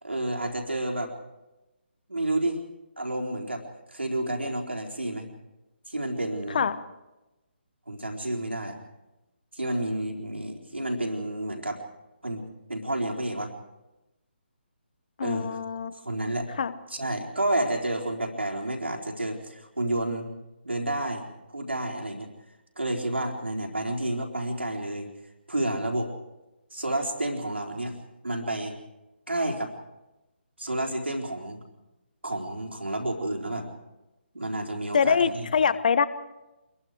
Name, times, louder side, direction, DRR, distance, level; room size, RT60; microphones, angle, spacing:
voice 1, 0.0-1.1 2.1-2.6 3.0-5.3 5.9-6.6 7.9-8.8 9.5-11.8 12.2-12.4 12.7-13.5 15.2-15.6 16.0-16.5 16.9-20.3 20.6-22.3 22.8-25.1 25.5-26.1 26.7-27.9 28.2-28.8 29.3-29.7 30.6-31.6 32.2-33.7 34.3-35.5, right 1 dB, 75° right, 1 dB, 4.1 m, -30 dB
voice 2, 15.2-15.9 16.2-16.7 34.9-36.1, left 6 dB, 45° left, 15 dB, 1.1 m, -24 dB
26.0 x 22.0 x 4.9 m, 1.0 s
figure-of-eight pair, 140°, 6 cm